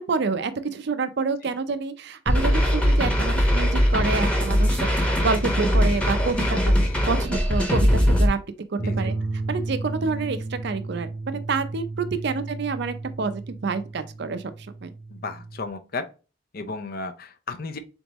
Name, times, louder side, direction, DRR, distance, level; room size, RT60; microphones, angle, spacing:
voice 1, 0.0-6.7 7.1-8.4 8.7-9.1 9.5-14.5 14.8-14.9, right 4 dB, 60° right, 0.5 m, -28 dB
sound 1, 2.3-8.3, equal, 5° left, 0.9 m, -21 dB
sound 2, 8.8-15.7, right 3 dB, 85° right, 0.9 m, -33 dB
voice 2, 15.1-16.0 16.5-17.8, left 3 dB, 50° left, 0.5 m, -34 dB
4.0 x 3.5 x 2.9 m
head